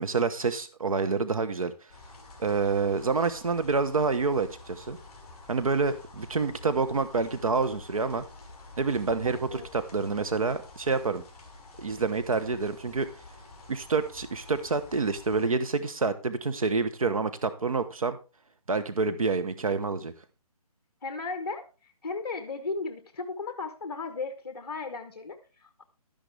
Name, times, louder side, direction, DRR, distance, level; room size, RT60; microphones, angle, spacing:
voice 1, 0.0-1.7 2.4-5.0 5.5-8.2 8.8-11.2 11.8-13.1 13.7-18.2 18.7-20.1, right 4 dB, 65° right, 11 dB, 1.2 m, -27 dB
sound 1, 1.9-15.5, left 2 dB, 15° left, 4.5 m, -49 dB
voice 2, 9.2-9.7 21.0-21.7 22.0-25.8, left 4 dB, 40° left, 7 dB, 1.2 m, -36 dB
12.0 x 10.5 x 3.4 m, 0.31 s
hypercardioid pair, 180°, 19 cm